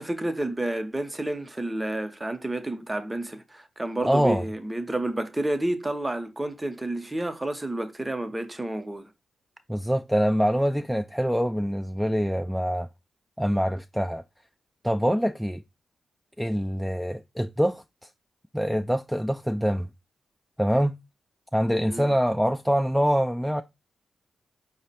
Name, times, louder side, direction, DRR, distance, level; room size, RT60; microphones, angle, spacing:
voice 1, 0.0-9.1 21.9-22.1, right 1 dB, 20° right, 0.8 m, -30 dB
voice 2, 4.0-4.4 9.7-12.9 13.4-14.2 14.8-15.6 16.4-17.8 18.5-19.9 20.6-20.9 21.5-23.6, equal, ahead, 0.3 m, -24 dB
4.8 x 2.1 x 4.1 m
supercardioid pair, 45°, 0 cm